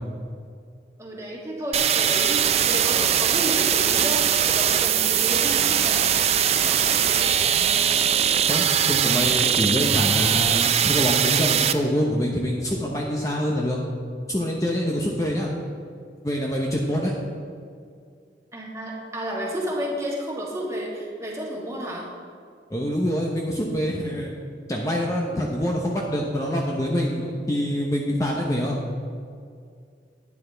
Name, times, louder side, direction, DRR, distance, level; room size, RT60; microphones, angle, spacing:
voice 1, 1.0-6.0 6.5-7.4 18.5-22.1, equal, 15° right, -3 dB, 1.7 m, -31 dB
sound 1, 1.7-11.7, right 9 dB, 35° right, 0.4 m, -21 dB
voice 2, 8.5-13.8 14.3-15.5 16.2-17.1 22.7-24.3 24.7-28.8, equal, 20° left, -1 dB, 0.8 m, -25 dB
12.0 x 9.6 x 3.4 m, 2.2 s
head